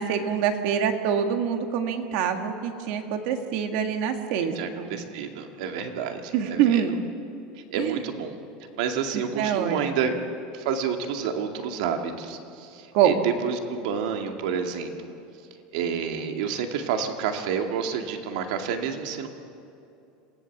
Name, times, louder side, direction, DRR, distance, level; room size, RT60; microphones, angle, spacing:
voice 1, 0.0-4.9 6.3-6.9 7.8-8.0 9.1-9.8 12.9-13.2, right 8 dB, 50° right, 5 dB, 1.9 m, -25 dB
voice 2, 4.6-6.8 7.7-8.4 8.7-10.1 10.5-15.2 15.7-19.3, right 7 dB, 70° right, 4 dB, 2.1 m, -29 dB
27.0 x 18.0 x 7.3 m, 2.7 s
supercardioid pair, 175°, 4 cm